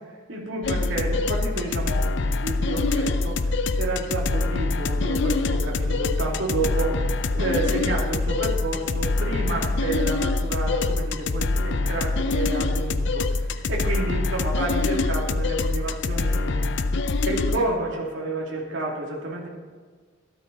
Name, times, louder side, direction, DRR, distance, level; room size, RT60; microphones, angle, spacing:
voice 1, 0.3-16.7 17.2-19.5, right 2 dB, 70° right, -3 dB, 2.7 m, -30 dB
sound 1, 0.6-17.6, left 3 dB, 60° left, 0.6 m, -25 dB
14.0 x 12.5 x 4.0 m, 1.5 s
head